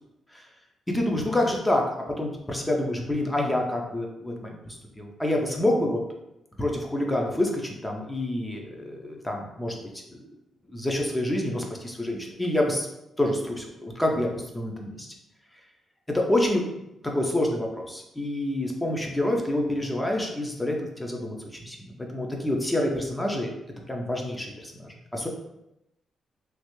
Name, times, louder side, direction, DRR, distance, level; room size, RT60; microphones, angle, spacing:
voice 1, 0.9-1.9 2.2-6.0 6.6-9.8 10.1-10.2 10.7-12.9 13.2-15.1 16.1-16.7 17.0-23.5 23.9-25.3, left 1 dB, 10° left, 0 dB, 0.5 m, -27 dB
3.2 x 2.4 x 3.0 m, 0.87 s
cardioid pair, 130°, 0 cm